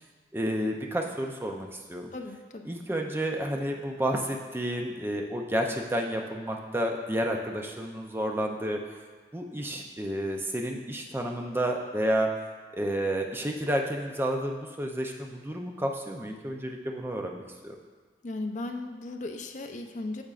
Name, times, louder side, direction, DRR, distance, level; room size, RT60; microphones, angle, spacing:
voice 1, 0.3-2.1 2.7-8.8 9.3-12.3 12.7-17.8, right 1 dB, 10° right, 2 dB, 0.5 m, -30 dB
voice 2, 2.1-2.7 18.2-20.2, left 2 dB, 40° left, 4 dB, 0.5 m, -36 dB
8.7 x 6.7 x 2.4 m, 1.5 s
head